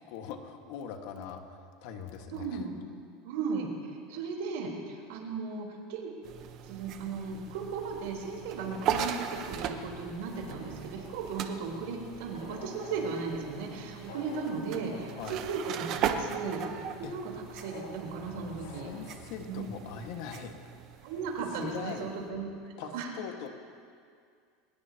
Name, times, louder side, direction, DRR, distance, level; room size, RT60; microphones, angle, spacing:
voice 1, 0.0-2.6 15.1-15.4 17.0-17.1 18.8-20.5 21.5-22.1 22.8-23.5, left 7 dB, 65° left, 4 dB, 1.7 m, -41 dB
voice 2, 2.3-2.7 3.2-6.1 6.7-16.7 17.0-18.9 19.5-20.0 21.0-22.5 22.8-23.1, right 5 dB, 75° right, 0 dB, 4.0 m, -36 dB
sound 1, 6.2-22.3, right 8 dB, 45° right, 1.0 m, -39 dB
sound 2, 8.6-19.2, left 3 dB, 90° left, 3.2 m, -50 dB
23.5 x 20.5 x 3.0 m, 2.2 s
supercardioid pair, 135°, 0 cm